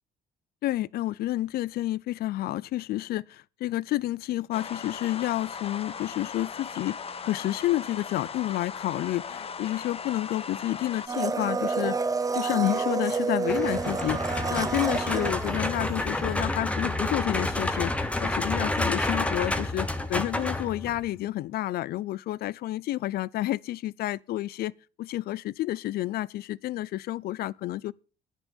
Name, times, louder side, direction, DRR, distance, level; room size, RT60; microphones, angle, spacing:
voice 1, 0.6-7.0 7.2-12.0 12.3-24.7 25.0-27.9, left 15 dB, 65° left, 0.5 m, -30 dB
sound 1, 4.5-11.1, left 6 dB, 35° left, 1.1 m, -38 dB
Domestic sounds home sounds, 11.1-16.3 16.6-16.7, right 4 dB, 20° right, 1.0 m, -29 dB
sound 2, 13.5-21.1, left 2 dB, 5° left, 1.3 m, -29 dB
10.0 x 10.0 x 7.0 m
cardioid pair, 110°, 17 cm